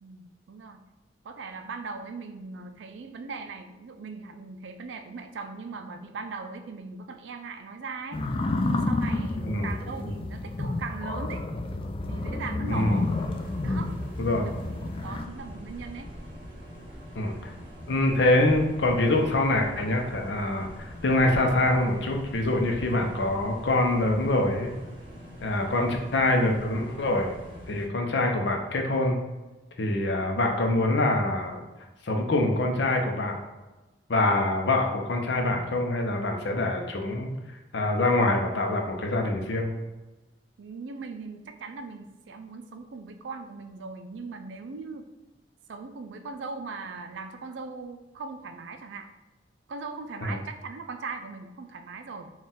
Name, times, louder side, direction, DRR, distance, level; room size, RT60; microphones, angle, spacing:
voice 1, 0.0-0.8 1.2-8.3 8.6-11.4 12.1-13.1 13.6-14.0 14.4-16.1 17.3-17.4 40.6-45.1 45.7-49.1 49.7-52.3, right 4 dB, 80° right, 7 dB, 0.4 m, -39 dB
sound 1, 8.1-15.2, left 2 dB, 30° left, 0.4 m, -30 dB
voice 2, 9.4-10.2 12.7-13.0 14.2-14.5 17.1-17.5 17.9-24.7 25.4-27.3 27.7-29.2 29.8-31.6 32.0-33.4 34.1-37.3 37.7-39.7 50.2-50.4, left 2 dB, 70° left, 2 dB, 0.6 m, -25 dB
sound 2, 12.6-27.9, equal, 30° right, 1.3 m, -43 dB
4.2 x 2.4 x 3.6 m, 1.1 s
head